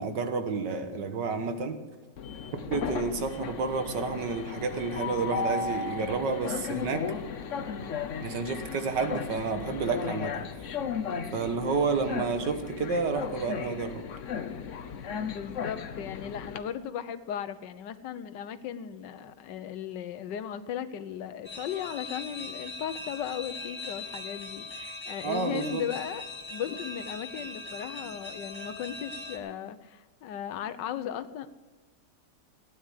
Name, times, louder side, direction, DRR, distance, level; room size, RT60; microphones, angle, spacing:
voice 1, 0.0-1.8 2.7-7.0 8.2-10.3 11.3-14.0 25.2-25.8, right 4 dB, 85° right, 8 dB, 2.0 m, -30 dB
Train, 2.2-16.6, left 6 dB, 55° left, 1.1 m, -35 dB
voice 2, 15.2-26.2 26.5-31.5, left 9 dB, 90° left, 13 dB, 1.5 m, -36 dB
sound 1, 21.4-29.4, left 2 dB, 15° left, 1.4 m, -40 dB
16.0 x 10.0 x 6.5 m, 1.3 s
omnidirectional pair, 1.9 m